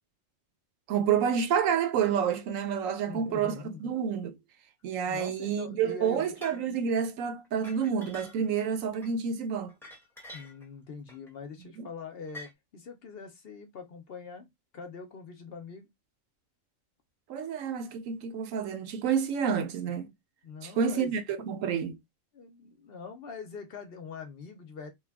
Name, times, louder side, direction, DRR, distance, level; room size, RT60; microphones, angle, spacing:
voice 1, 0.9-4.3 4.8-9.7 11.8-11.9 17.3-20.1 20.6-22.0, right 7 dB, 85° right, 1.0 m, -29 dB
voice 2, 2.8-3.9 5.0-6.5 10.3-15.9 20.4-21.1 22.3-24.9, left 5 dB, 55° left, 0.8 m, -43 dB
sound 1, 6.4-6.6 7.4-8.6 8.9-9.1 9.7-10.7 11.1-11.3 12.3-12.5, left 1 dB, ahead, 0.8 m, -47 dB
3.1 x 2.3 x 3.4 m
omnidirectional pair, 1.3 m